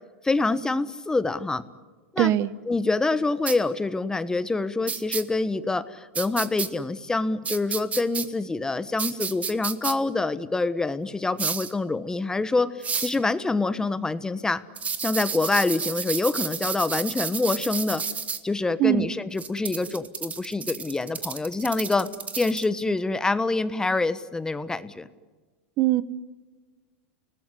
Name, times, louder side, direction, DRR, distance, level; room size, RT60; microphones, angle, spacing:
voice 1, 0.2-1.6 2.1-2.3 2.7-14.6 15.0-18.0 18.4-22.1 22.4-25.1, left 3 dB, 10° left, 14 dB, 1.2 m, -26 dB
voice 2, 2.2-2.5 18.8-19.1 25.8-26.0, right 14 dB, 45° right, 17 dB, 1.1 m, -21 dB
sound 1, 3.5-3.6 4.9-5.2 6.1-6.7 7.4-8.3 9.0-9.9 11.4-11.7 12.8-13.2 14.8-18.4 19.4-22.7, right 6 dB, 20° right, 1.9 m, -31 dB
29.0 x 20.0 x 9.9 m, 1.4 s
hypercardioid pair, 115°, 6 cm